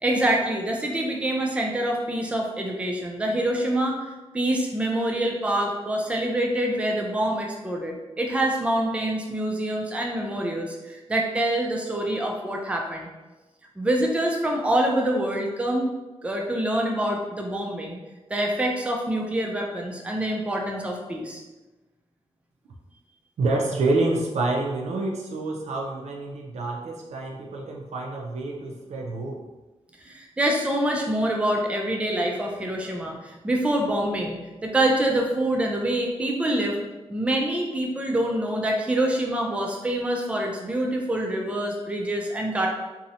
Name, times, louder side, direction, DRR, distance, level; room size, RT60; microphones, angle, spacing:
voice 1, 0.0-4.0 4.3-13.1 13.8-15.9 16.2-18.0 18.3-21.4 30.0-34.4 34.6-36.8 37.1-42.7, right 1 dB, 10° right, 0 dB, 0.3 m, -26 dB
voice 2, 23.4-29.4, right 2 dB, 85° right, 0 dB, 0.4 m, -27 dB
2.5 x 2.0 x 2.7 m, 1.1 s
wide cardioid pair, 120°, 11 cm